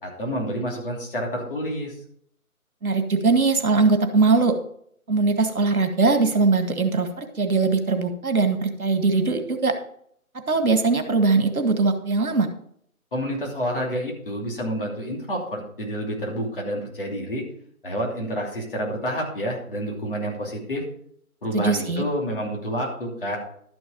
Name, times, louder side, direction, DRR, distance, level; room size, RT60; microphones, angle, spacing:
voice 1, 0.0-1.9 13.1-17.4 17.8-20.8 21.4-23.4, equal, 35° left, -2 dB, 3.0 m, -29 dB
voice 2, 2.8-4.6 5.1-9.7 10.5-12.5 21.5-22.0, right 3 dB, 75° right, 7 dB, 1.8 m, -21 dB
12.0 x 6.3 x 5.2 m, 0.65 s
figure-of-eight pair, 165°, 44 cm